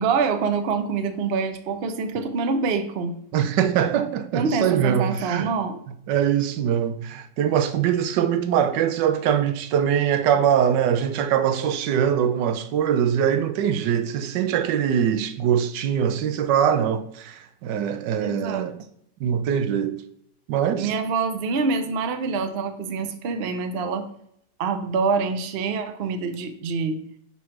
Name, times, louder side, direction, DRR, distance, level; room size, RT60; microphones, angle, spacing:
voice 1, 0.0-3.1 4.3-5.8 18.2-18.7 20.8-24.1 24.6-27.0, right 4 dB, 55° right, 0.6 m, -25 dB
voice 2, 3.3-5.5 6.1-18.8 19.2-20.0 20.5-20.9, right 9 dB, 85° right, 1.3 m, -22 dB
4.7 x 4.2 x 5.8 m
omnidirectional pair, 1.9 m